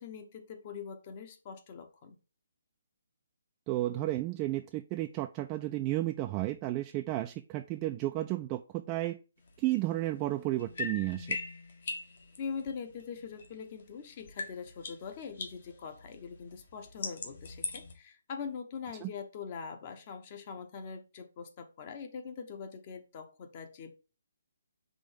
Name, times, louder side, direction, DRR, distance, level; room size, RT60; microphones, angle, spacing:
voice 1, 0.0-2.2 12.4-24.0, left 6 dB, 35° left, 1.0 m, -43 dB
voice 2, 3.7-9.2 9.6-11.4 19.0-19.1, right 16 dB, 25° right, 0.4 m, -32 dB
sound 1, 9.5-13.9 14.2-17.9, left 3 dB, 55° left, 1.5 m, -42 dB
5.1 x 3.4 x 5.3 m
figure-of-eight pair, 140°, 0 cm